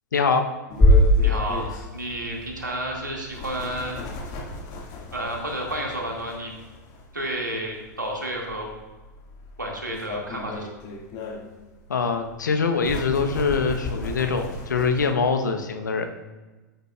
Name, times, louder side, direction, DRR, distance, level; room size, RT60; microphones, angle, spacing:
voice 1, 0.1-0.5 11.9-16.1, left 5 dB, 75° left, 6 dB, 1.0 m, -23 dB
sound 1, 0.7-15.1, left 2 dB, 40° left, 1.9 m, -37 dB
sound 2, 0.8-2.9, left 1 dB, 15° left, 1.8 m, -19 dB
voice 2, 0.9-4.0 5.1-6.5 7.1-8.8 9.6-10.7, right 1 dB, 90° right, -1 dB, 2.1 m, -31 dB
14.0 x 8.0 x 2.4 m, 1.2 s
figure-of-eight pair, 95°, 10 cm